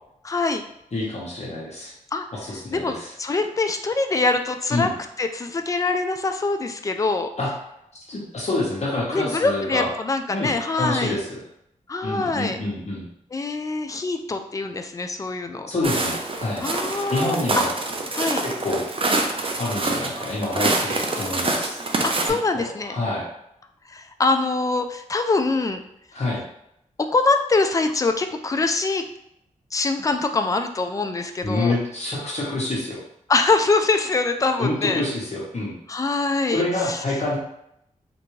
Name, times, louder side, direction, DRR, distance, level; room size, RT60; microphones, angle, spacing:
voice 1, 0.2-0.6 2.1-2.3 2.7-4.9 5.2-7.3 9.1-11.2 11.9-12.6 13.3-15.7 16.6-17.6 18.1-18.4 22.0-23.0 23.9-25.8 27.0-29.0 29.7-31.7 33.3-35.0 35.9-37.0, left 3 dB, 25° left, 6 dB, 0.4 m, -24 dB
voice 2, 0.9-1.9 2.3-3.1 4.7-4.9 7.4-7.5 8.1-9.9 10.3-11.4 12.0-13.0 15.7-16.6 17.1-17.7 18.4-18.8 19.6-21.8 22.5-23.3 26.1-26.4 31.4-33.0 34.6-35.7 36.5-37.4, left 2 dB, 55° left, -5 dB, 1.0 m, -27 dB
Walk footsteps, 15.8-22.3, right 2 dB, 40° right, 0.5 m, -26 dB
3.3 x 2.6 x 3.1 m, 0.77 s
cardioid pair, 70°, 14 cm